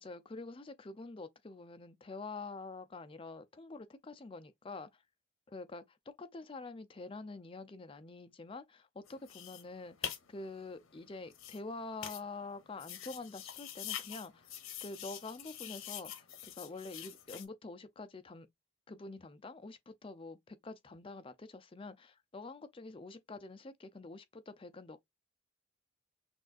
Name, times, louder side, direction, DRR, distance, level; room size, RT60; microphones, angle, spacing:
voice 1, 0.0-5.0 5.5-14.5 14.8-16.3 16.6-18.5 18.9-25.0, left 3 dB, 25° left, 0.5 m, -46 dB
sound 1, 9.1-17.5, left 10 dB, 80° left, 0.9 m, -45 dB
6.1 x 2.5 x 2.4 m
head